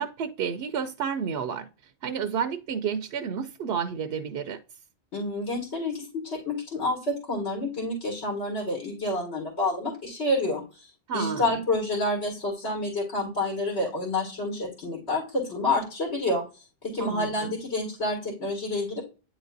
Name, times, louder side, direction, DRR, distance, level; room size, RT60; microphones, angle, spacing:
voice 1, 0.0-1.7 2.0-4.6 11.1-11.5 17.0-17.5, right 7 dB, 65° right, 0.8 m, -30 dB
voice 2, 5.1-10.9 11.1-19.0, left 2 dB, 70° left, 2.4 m, -29 dB
9.7 x 4.0 x 2.6 m
omnidirectional pair, 1.2 m